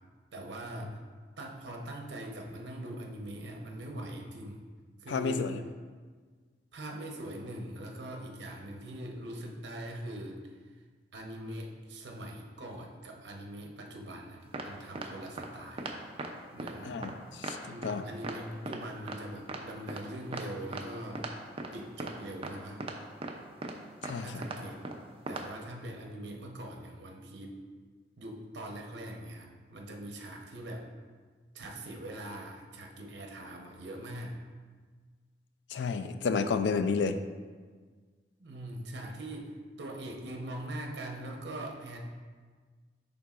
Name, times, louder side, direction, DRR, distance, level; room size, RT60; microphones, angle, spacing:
voice 1, 0.3-1.0 1.4-4.7 5.0-5.5 6.7-10.5 11.1-15.9 16.5-17.1 17.6-21.3 21.7-22.8 24.2-24.8 25.3-27.6 28.2-30.9 31.5-34.4 38.4-39.5 39.8-42.0, right 1 dB, 70° right, 1 dB, 0.8 m, -42 dB
voice 2, 5.1-5.6 16.8-17.1 17.4-17.6 17.8-18.0 24.0-24.3 35.7-37.2, left 5 dB, 75° left, 10 dB, 0.4 m, -30 dB
sound 1, 14.5-14.7 15.0-15.1 15.4-15.5 15.8-16.3 16.6-16.7 17.0-17.1 17.4-17.6 17.8-17.9 18.2-18.4 18.7-18.8 19.1-19.2 19.5-19.6 19.9-20.0 20.3-20.4 20.7-20.8 21.2-21.3 21.6-21.7 22.0-22.1 22.4-22.5 22.8-22.9 23.2-23.3 23.6-23.7 24.0-24.2 24.4-24.6 24.9-25.0 25.3-25.4, right 3 dB, 35° right, 0.5 m, -37 dB
10.5 x 3.6 x 2.4 m, 1.5 s
head